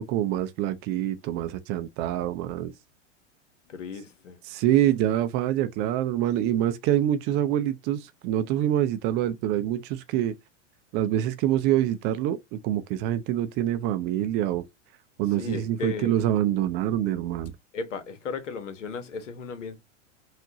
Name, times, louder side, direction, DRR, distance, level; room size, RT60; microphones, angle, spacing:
voice 1, 0.0-2.7 4.4-10.4 10.9-14.6 15.2-17.5, right 12 dB, 30° right, 0.4 m, -26 dB
voice 2, 3.7-4.4 15.4-16.2 17.7-19.8, left 5 dB, 75° left, 1.2 m, -35 dB
5.8 x 2.5 x 2.7 m
hypercardioid pair, 100°, 37 cm